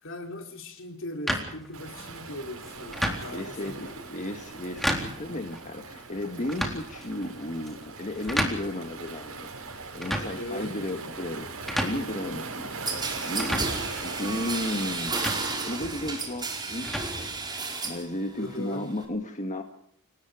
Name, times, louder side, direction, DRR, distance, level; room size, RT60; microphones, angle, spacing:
voice 1, 0.0-3.9 10.1-10.8 18.4-18.9, left 1 dB, 65° left, 4 dB, 3.9 m, -39 dB
sound 1, 1.3-17.9, equal, ahead, 3.9 m, -35 dB
Waves surf, 1.7-15.9, right 4 dB, 85° right, 5.2 m, -40 dB
voice 2, 3.3-9.5 9.9-12.7 13.2-13.7 14.0-15.2 15.6-17.1 17.8-19.6, left 1 dB, 35° left, 5 dB, 1.7 m, -34 dB
sound 2, 12.9-18.1 18.4-19.0, right 3 dB, 20° right, 4.6 m, -32 dB
29.0 x 19.0 x 5.1 m, 0.66 s
head